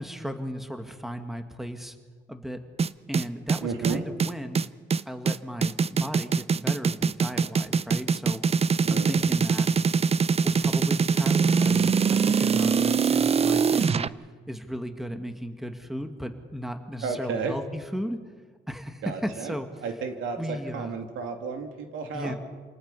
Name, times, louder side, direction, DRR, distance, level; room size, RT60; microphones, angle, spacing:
voice 1, 0.0-2.0 2.3-2.6 3.1-4.6 5.1-8.4 8.9-9.7 10.4-14.1 14.5-18.2 18.7-19.7 20.4-21.1 22.1-22.3, equal, ahead, 6 dB, 1.9 m, -35 dB
sound 1, 2.8-14.1, right 5 dB, 30° right, 0.6 m, -23 dB
voice 2, 3.6-4.0 8.8-9.3 17.0-17.6 19.0-19.5 19.8-22.4, right 5 dB, 85° right, 5 dB, 2.5 m, -32 dB
28.0 x 19.0 x 5.5 m, 1.5 s
cardioid pair, 90°, 20 cm